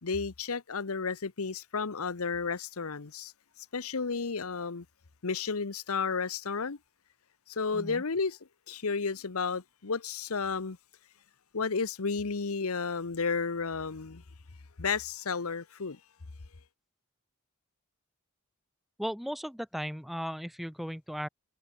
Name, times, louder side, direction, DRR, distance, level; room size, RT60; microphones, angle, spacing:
voice 1, 0.0-3.3 3.7-4.8 5.2-6.8 7.5-8.4 8.7-10.8 11.5-14.2 14.8-16.0, left 5 dB, 70° left, 1.0 m, -32 dB
voice 2, 19.0-21.3, equal, ahead, 3.8 m, -36 dB
head